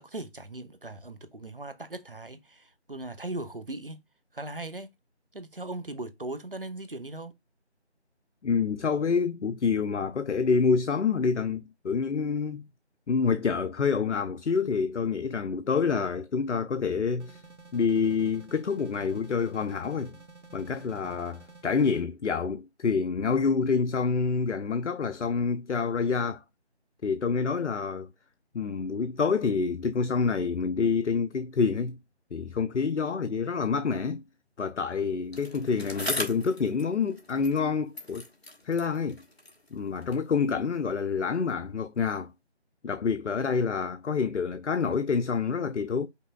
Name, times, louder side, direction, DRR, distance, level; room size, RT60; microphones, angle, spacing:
voice 1, 0.0-4.0 4.3-4.9 5.3-7.3, right 2 dB, 50° right, 0.6 m, -39 dB
voice 2, 8.4-12.7 13.1-17.4 17.7-20.2 20.5-26.4 27.0-28.1 28.5-32.0 32.3-34.2 34.6-38.2 38.7-39.2 39.7-42.3 42.8-46.1, left 5 dB, 90° left, 0.5 m, -27 dB
sound 1, 17.2-22.0, right 3 dB, 90° right, 1.1 m, -51 dB
Bicycle, 35.3-37.7 37.9-40.3 41.1-41.2, left 1 dB, 65° left, 1.4 m, -39 dB
5.5 x 3.5 x 2.2 m
figure-of-eight pair, 170°, 34 cm